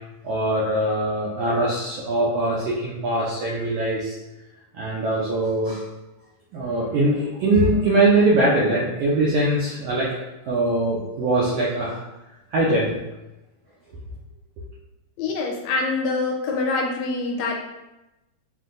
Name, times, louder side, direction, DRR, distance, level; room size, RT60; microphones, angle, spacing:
voice 1, 0.2-4.1 4.7-5.8 6.5-12.0 12.5-13.0, right 2 dB, 80° right, -5 dB, 1.4 m, -22 dB
voice 2, 15.2-17.6, left 3 dB, 80° left, 0 dB, 1.8 m, -25 dB
5.6 x 2.6 x 2.5 m, 0.98 s
omnidirectional pair, 3.4 m